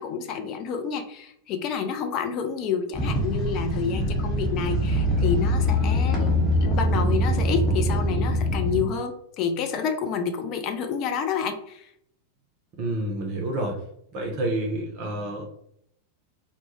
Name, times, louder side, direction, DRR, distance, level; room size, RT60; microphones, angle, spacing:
voice 1, 0.0-6.3 6.6-11.9, left 6 dB, 40° left, 6 dB, 0.3 m, -29 dB
sound 1, 2.9-8.8, equal, 20° left, 0.9 m, -23 dB
voice 2, 12.8-13.8 14.1-15.4, right 1 dB, 45° right, 1 dB, 0.5 m, -28 dB
2.1 x 2.0 x 2.9 m, 0.71 s
figure-of-eight pair, 90°, 0 cm